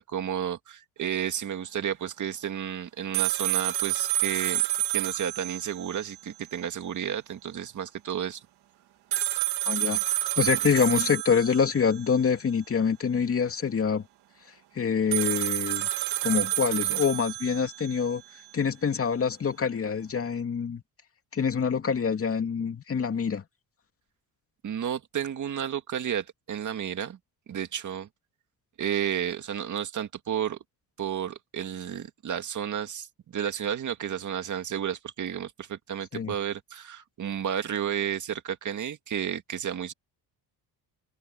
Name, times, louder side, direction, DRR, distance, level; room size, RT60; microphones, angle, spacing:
voice 1, 0.0-4.6 4.9-8.4 24.6-27.2 27.5-28.1 28.8-30.6 31.0-33.1 33.3-39.9, right 9 dB, 50° right, 2.1 m, -32 dB
sound 1, 3.1-6.2 6.5-6.6 9.1-12.1 15.1-18.1, right 14 dB, 75° right, 1.6 m, -29 dB
voice 2, 9.7-14.0 14.7-15.9 16.2-18.2 18.5-20.8 21.3-23.4 36.1-36.3, left 6 dB, 35° left, 2.6 m, -26 dB
cardioid pair, 115°, 39 cm